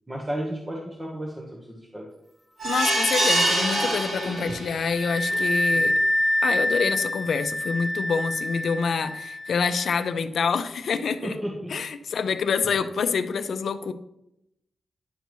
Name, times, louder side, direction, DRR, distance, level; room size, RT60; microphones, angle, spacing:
voice 1, 0.1-2.1 11.2-11.7, equal, 15° right, -1 dB, 1.1 m, -33 dB
voice 2, 2.6-5.9 6.4-11.4 11.7-13.9, left 5 dB, 70° left, 10 dB, 0.5 m, -26 dB
sound 1, 2.6-4.9 5.3-5.4 5.8-5.9, right 1 dB, 70° right, 2.6 m, -24 dB
Wind instrument woodwind instrument, 2.7-10.1, left 1 dB, ahead, 0.4 m, -27 dB
10.5 x 6.7 x 3.1 m, 0.83 s
wide cardioid pair, 145°, 0 cm